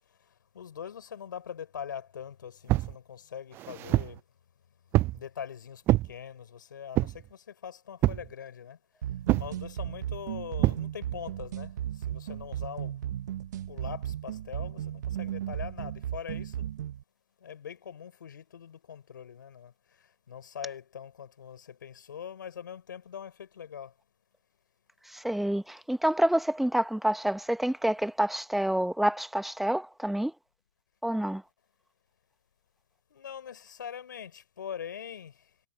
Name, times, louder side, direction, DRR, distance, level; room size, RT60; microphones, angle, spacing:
voice 1, 0.5-4.2 5.1-8.8 9.4-13.0 13.7-16.7 17.4-19.7 20.3-23.9 33.1-35.4, left 8 dB, 70° left, 5.1 m, -42 dB
Pillow Hits, 2.7-3.0 3.5-4.2 4.9-5.2 5.9-6.1 7.0-7.3 8.0-8.3 9.3-9.5 10.6-10.8, right 16 dB, 20° right, 0.3 m, -26 dB
sound 1, 9.0-17.0, right 11 dB, 60° right, 1.3 m, -35 dB
voice 2, 25.1-30.3 31.0-31.4, right 1 dB, ahead, 1.3 m, -28 dB
hypercardioid pair, 130°, 11 cm